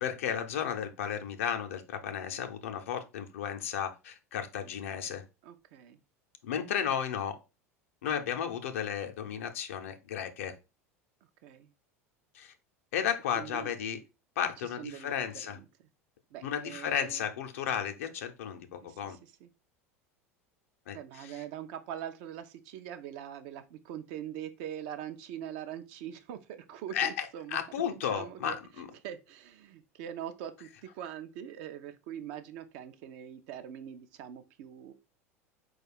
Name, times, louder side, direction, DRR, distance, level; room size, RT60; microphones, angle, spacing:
voice 1, 0.0-5.2 6.4-7.4 8.0-10.5 12.3-12.5 12.9-14.0 14.4-15.6 16.4-19.2 20.9-21.0 26.9-28.8, left 8 dB, 60° left, 0.6 m, -33 dB
voice 2, 5.4-6.0 11.4-11.7 13.3-13.7 14.6-15.9 16.3-17.2 18.8-19.5 20.9-27.6 27.9-34.9, right 10 dB, 50° right, 0.5 m, -43 dB
4.7 x 2.4 x 4.5 m
figure-of-eight pair, 75°, 8 cm